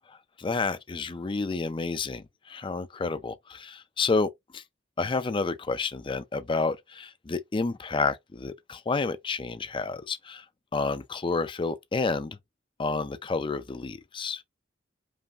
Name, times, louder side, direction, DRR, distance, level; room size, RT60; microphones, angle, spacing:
voice 1, 0.4-4.6 5.0-10.4 10.7-12.4 12.8-14.4, left 4 dB, 25° left, 0.4 m, -30 dB
5.3 x 2.6 x 2.3 m
head